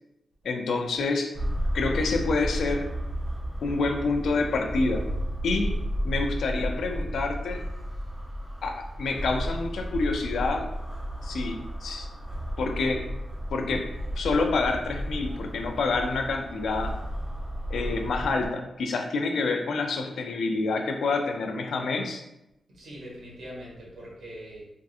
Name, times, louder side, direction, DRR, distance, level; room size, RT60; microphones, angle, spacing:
voice 1, 0.4-1.3 1.7-2.9 3.6-5.0 5.4-5.8 6.0-7.6 8.6-10.7 11.2-12.1 12.6-13.1 13.5-17.0 17.7-22.2, left 3 dB, 80° left, 4 dB, 0.4 m, -28 dB
sound 1, 1.3-18.5, equal, 20° right, 0.5 m, -33 dB
voice 2, 22.7-24.6, equal, 75° right, -5 dB, 1.3 m, -42 dB
3.5 x 2.6 x 2.4 m, 0.89 s
wide cardioid pair, 135°, 0 cm